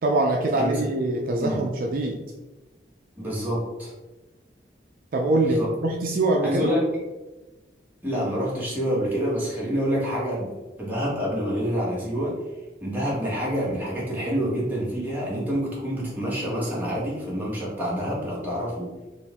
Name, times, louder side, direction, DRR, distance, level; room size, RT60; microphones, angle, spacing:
voice 1, 0.0-2.2 5.1-6.7, right 2 dB, 50° right, 0 dB, 0.4 m, -23 dB
voice 2, 3.2-3.9 5.5-5.7 6.4-6.8 8.0-10.5 10.8-12.3 12.8-18.9, equal, 10° right, -7 dB, 1.3 m, -27 dB
4.3 x 2.5 x 3.4 m, 1.1 s
head